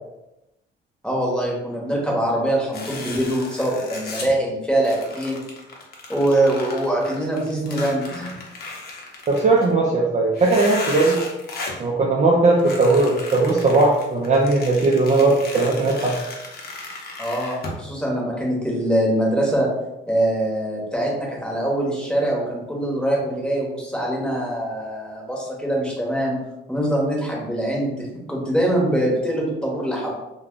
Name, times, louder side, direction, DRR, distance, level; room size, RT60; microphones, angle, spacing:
voice 1, 1.0-5.4 6.1-8.4 17.2-19.7 20.1-26.4 26.7-30.1, right 1 dB, 5° left, -3 dB, 1.0 m, -23 dB
sound 1, 2.7-4.3 4.8-9.7 10.3-11.8 12.6-17.8, left 2 dB, 50° left, 0.7 m, -35 dB
voice 2, 9.3-11.2 11.8-16.1, right 3 dB, 35° right, -1 dB, 0.4 m, -18 dB
2.2 x 2.2 x 3.7 m, 0.93 s
cardioid pair, 90°, 20 cm